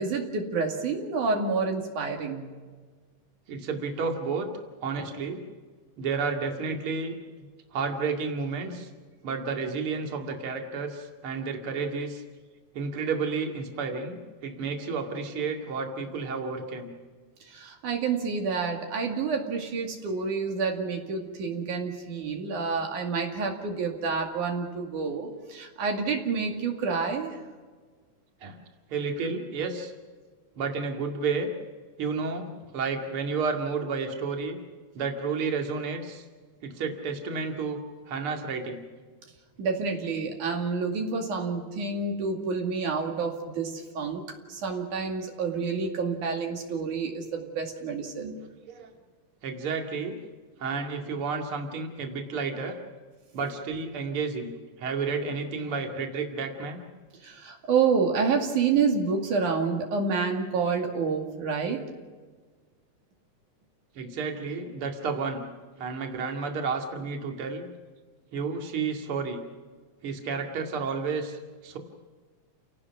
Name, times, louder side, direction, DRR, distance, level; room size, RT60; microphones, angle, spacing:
voice 1, 0.0-2.5 17.5-27.4 39.6-48.4 57.2-61.8, right 5 dB, 85° right, 2 dB, 3.9 m, -28 dB
voice 2, 3.5-4.5 4.8-5.4 6.0-7.5 7.7-8.9 9.2-12.2 12.7-16.9 28.4-28.6 28.9-29.9 30.6-31.5 32.0-34.6 34.9-36.2 36.6-37.8 38.1-38.8 48.7-48.9 49.4-50.2 50.6-52.8 53.3-54.5 54.8-56.8 64.0-65.4 65.8-67.7 68.3-69.4 70.0-71.8, right 4 dB, 45° right, 2 dB, 3.0 m, -31 dB
29.5 x 18.0 x 6.0 m, 1.5 s
omnidirectional pair, 3.4 m